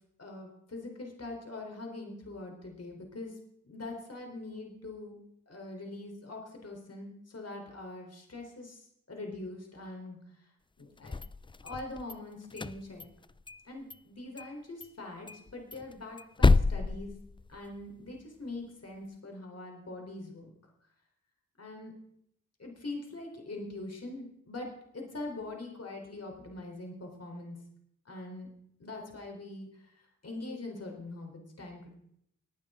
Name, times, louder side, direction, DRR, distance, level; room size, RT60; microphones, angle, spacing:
voice 1, 0.2-3.4 3.6-5.2 5.5-10.2 10.8-11.2 11.6-13.1 13.6-17.1 17.5-20.5 21.6-21.9 22.6-27.6 28.1-28.5 28.8-32.0, left 2 dB, 50° left, 2 dB, 3.9 m, -43 dB
sound 1, 11.0-12.1 12.5-13.6 13.9-14.0 14.4-14.5 14.8-14.9 15.3-17.9, left 3 dB, 15° left, 0.4 m, -29 dB
21.5 x 9.6 x 3.8 m, 0.74 s
cardioid pair, 45°, 33 cm